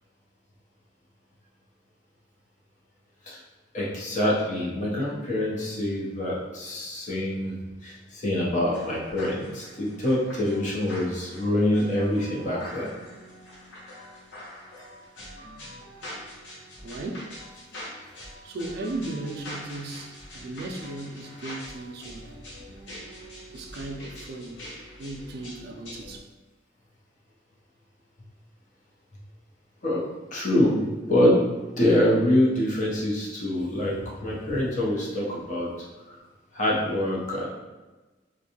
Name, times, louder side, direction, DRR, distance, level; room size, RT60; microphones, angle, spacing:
voice 1, 3.7-12.9 29.8-30.0 30.3-31.4 31.8-34.0 34.2-35.7 36.1-36.2 36.5-37.4, left 1 dB, 45° left, 0.7 m, -25 dB
sound 1, 8.5-26.2, left 1 dB, 80° left, 0.7 m, -43 dB
voice 2, 16.8-17.4 18.4-22.4 23.5-24.7 25.0-26.3, right 2 dB, 55° right, 0.3 m, -36 dB
2.5 x 2.2 x 2.8 m
head